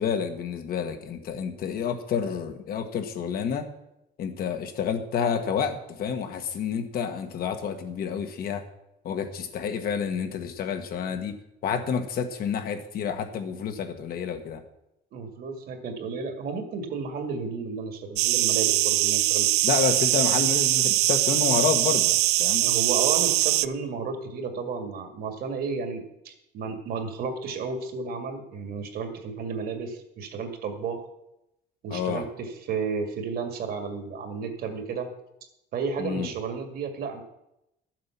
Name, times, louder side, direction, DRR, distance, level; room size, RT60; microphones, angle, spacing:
voice 1, 0.0-3.7 4.2-8.6 9.0-11.3 11.6-14.6 19.6-22.6 31.9-32.2 36.0-36.3, left 7 dB, 60° left, 7 dB, 1.5 m, -29 dB
voice 2, 15.1-19.5 22.6-31.1 31.8-35.1 35.7-37.2, right 5 dB, 65° right, 5 dB, 2.1 m, -32 dB
sound 1, 18.2-23.7, right 17 dB, 85° right, 0.4 m, -22 dB
12.5 x 7.6 x 5.9 m, 0.85 s
cardioid pair, 110°, 17 cm